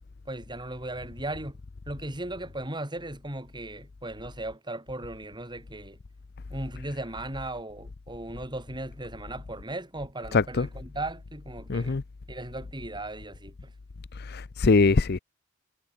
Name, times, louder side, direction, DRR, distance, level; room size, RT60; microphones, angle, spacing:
voice 1, 0.3-1.6 1.8-6.0 6.5-12.0 12.3-13.7, right 1 dB, 20° right, 4.7 m, -37 dB
voice 2, 10.3-10.7 11.7-12.0 14.3-15.2, left 4 dB, 50° left, 0.6 m, -22 dB
head